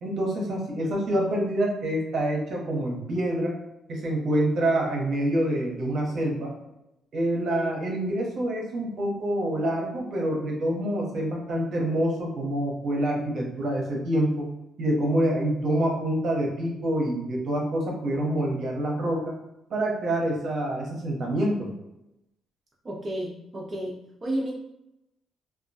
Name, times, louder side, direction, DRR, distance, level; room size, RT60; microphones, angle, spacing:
voice 1, 0.0-3.5 3.9-6.5 7.1-14.4 14.8-19.3 19.7-21.7, right 1 dB, 60° right, -1 dB, 0.8 m, -26 dB
voice 2, 22.8-24.5, right 1 dB, 30° right, -4 dB, 0.5 m, -32 dB
2.3 x 2.1 x 2.6 m, 0.88 s
cardioid pair, 90°, 0 cm